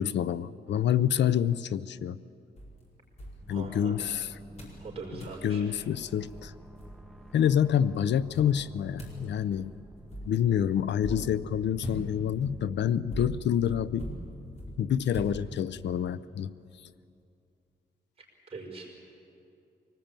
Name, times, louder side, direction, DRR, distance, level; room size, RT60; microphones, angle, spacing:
voice 1, 0.0-2.2 3.5-4.3 5.4-6.5 7.3-9.7 10.3-14.1 14.8-16.5, left 9 dB, 85° left, 16 dB, 0.6 m, -27 dB
sound 1, 2.6-4.1 4.6-4.8 5.2-5.4 6.0-6.1 6.3-7.4 8.3-15.9, equal, 40° left, 4.9 m, -42 dB
sound 2, 3.4-12.9, equal, ahead, 1.1 m, -49 dB
voice 2, 3.5-4.0 4.8-5.8 18.2-19.0, right 3 dB, 35° right, -2 dB, 5.5 m, -42 dB
24.5 x 19.0 x 8.9 m, 2.6 s
wide cardioid pair, 175°, 18 cm